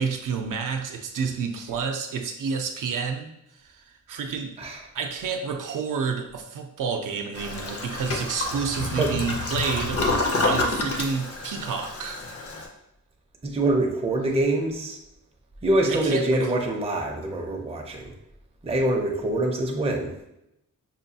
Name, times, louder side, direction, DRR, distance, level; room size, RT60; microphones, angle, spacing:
voice 1, 0.0-12.2 15.8-16.5, right 5 dB, 75° right, 4 dB, 0.5 m, -30 dB
Toilet flush, 7.3-12.7, left 2 dB, 45° left, 0.6 m, -28 dB
voice 2, 13.4-15.0 15.6-18.1 18.6-20.1, right 1 dB, 20° right, 0 dB, 0.5 m, -25 dB
5.6 x 2.3 x 2.7 m, 0.82 s
wide cardioid pair, 165°, 32 cm